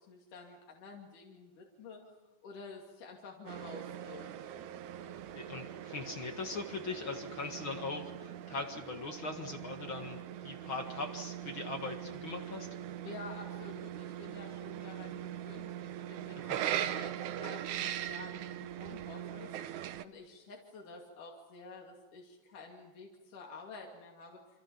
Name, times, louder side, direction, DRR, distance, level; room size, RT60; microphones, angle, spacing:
voice 1, 0.0-2.0 2.4-4.3 13.1-24.4, left 4 dB, 75° left, -1 dB, 4.1 m, -50 dB
sound 1, 3.5-20.0, right 11 dB, 70° right, 2.3 m, -41 dB
voice 2, 5.3-12.7 16.3-16.6, left 3 dB, 45° left, 5 dB, 2.1 m, -40 dB
28.0 x 26.0 x 7.1 m, 1.1 s
omnidirectional pair, 3.7 m